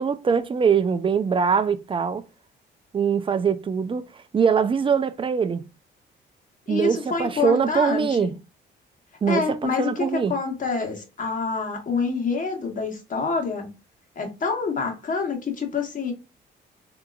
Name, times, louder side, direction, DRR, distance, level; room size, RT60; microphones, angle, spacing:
voice 1, 0.0-2.2 2.9-5.6 6.7-8.3 9.2-10.4, right 6 dB, 25° right, 0.4 m, -23 dB
voice 2, 6.7-8.2 9.3-13.7 14.1-16.1, left 4 dB, 40° left, 1.4 m, -27 dB
3.7 x 2.8 x 2.4 m
cardioid pair, 90°, 20 cm